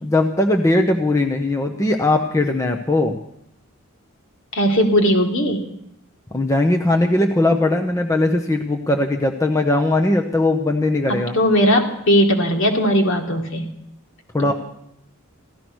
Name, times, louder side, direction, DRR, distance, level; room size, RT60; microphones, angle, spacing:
voice 1, 0.0-3.2 6.3-11.4 14.3-14.5, left 2 dB, 15° left, 3 dB, 0.8 m, -19 dB
voice 2, 4.5-5.7 11.1-13.7, equal, 60° left, 2 dB, 2.3 m, -18 dB
15.5 x 13.0 x 6.2 m, 0.75 s
head